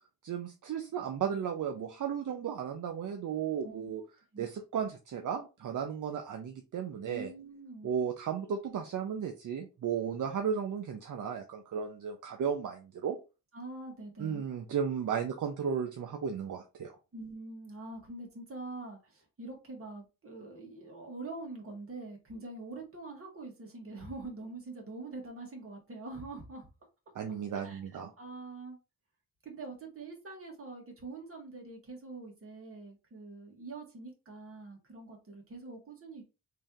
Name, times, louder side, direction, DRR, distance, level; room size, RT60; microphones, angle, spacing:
voice 1, 0.2-4.0 4.4-7.3 7.8-13.2 14.2-17.0 27.1-28.1, right 7 dB, 70° right, 0.6 m, -34 dB
voice 2, 7.0-7.9 13.5-14.4 17.1-26.7 27.5-28.8 29.4-36.2, right 3 dB, 40° right, 1.5 m, -44 dB
3.2 x 2.8 x 3.6 m
wide cardioid pair, 120°, 32 cm